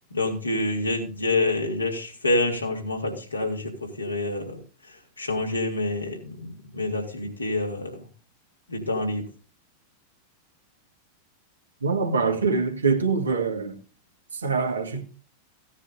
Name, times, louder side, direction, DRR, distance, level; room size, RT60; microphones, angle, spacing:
voice 1, 0.1-4.6 4.8-6.5 6.7-8.0 8.7-9.2, left 2 dB, 80° left, 3.0 m, -27 dB
voice 2, 11.8-13.8 14.3-15.0, right 4 dB, 75° right, 1.9 m, -24 dB
16.5 x 9.7 x 2.7 m
figure-of-eight pair, 90°, 0 cm